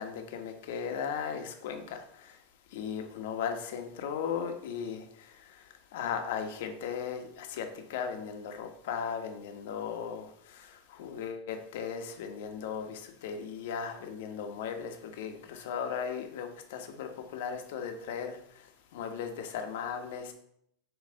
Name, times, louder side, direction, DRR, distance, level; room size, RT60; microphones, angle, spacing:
voice 1, 0.0-2.4 2.7-20.3, left 7 dB, 70° left, 1.2 m, -37 dB
8.0 x 3.2 x 6.4 m
supercardioid pair, 150°, 0 cm